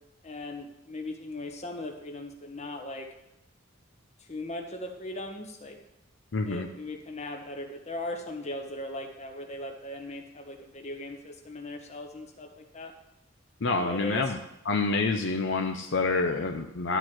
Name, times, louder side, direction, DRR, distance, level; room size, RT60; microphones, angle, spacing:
voice 1, 0.2-3.1 4.3-5.8 6.5-12.9 13.8-14.3, left 1 dB, 35° left, 4 dB, 1.4 m, -38 dB
voice 2, 6.3-6.7 13.6-14.4 14.7-17.0, left 3 dB, 65° left, 4 dB, 0.7 m, -27 dB
12.0 x 4.6 x 7.8 m, 0.83 s
head